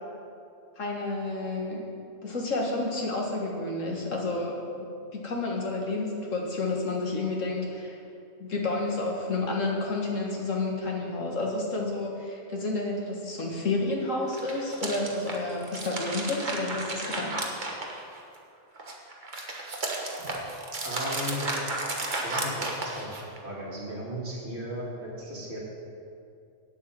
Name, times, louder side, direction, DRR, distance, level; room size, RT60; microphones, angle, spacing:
voice 1, 0.8-1.8 2.2-4.9 5.1-8.0 8.4-17.3, left 2 dB, 85° left, -1 dB, 2.1 m, -30 dB
sound 1, 14.2-18.4 18.8-23.4, right 2 dB, 40° right, 1.4 m, -33 dB
voice 2, 20.8-21.4 22.2-23.1 23.4-25.6, equal, 60° right, -4 dB, 2.4 m, -36 dB
8.9 x 8.4 x 7.2 m, 2.5 s
omnidirectional pair, 1.3 m